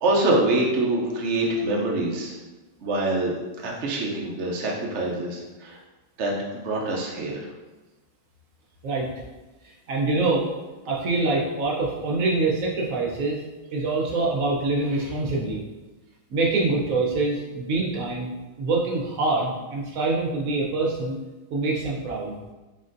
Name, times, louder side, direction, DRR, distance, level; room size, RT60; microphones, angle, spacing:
voice 1, 0.0-2.3 2.8-3.3 3.6-5.8 6.2-7.5, right 2 dB, 90° right, -2 dB, 0.6 m, -25 dB
voice 2, 9.6-10.5 10.9-13.4 13.7-15.6 16.3-21.2 21.5-22.4, right 3 dB, 60° right, -3 dB, 1.0 m, -25 dB
4.1 x 4.1 x 2.5 m, 1.2 s
omnidirectional pair, 2.1 m